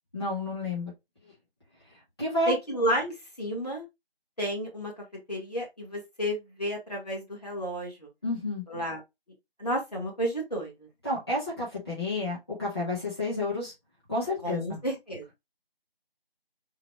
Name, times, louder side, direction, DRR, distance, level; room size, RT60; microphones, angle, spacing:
voice 1, 0.1-0.9 2.2-2.5 8.2-8.6 11.0-13.7 14.1-14.8, left 2 dB, 25° left, 1.3 m, -30 dB
voice 2, 2.5-3.8 4.4-8.1 8.7-9.0 9.6-10.9 14.4-15.2, equal, 40° left, 1.4 m, -31 dB
3.9 x 2.2 x 3.3 m
figure-of-eight pair, 170°, 30 cm